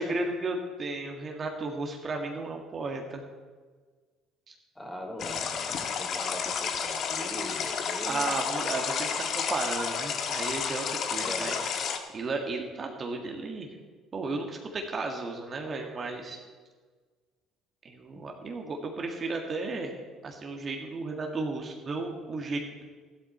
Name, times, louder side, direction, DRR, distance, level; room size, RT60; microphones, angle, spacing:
voice 1, 0.0-3.2 4.5-4.6 8.0-11.5 12.1-13.7 14.1-16.4 17.8-22.8, right 3 dB, 40° right, 2 dB, 1.8 m, -34 dB
voice 2, 4.7-8.7 11.2-11.7, equal, 15° left, 2 dB, 3.0 m, -40 dB
sound 1, 5.2-12.0, left 6 dB, 55° left, 1.3 m, -31 dB
13.5 x 12.0 x 4.4 m, 1.5 s
hypercardioid pair, 65°, 0 cm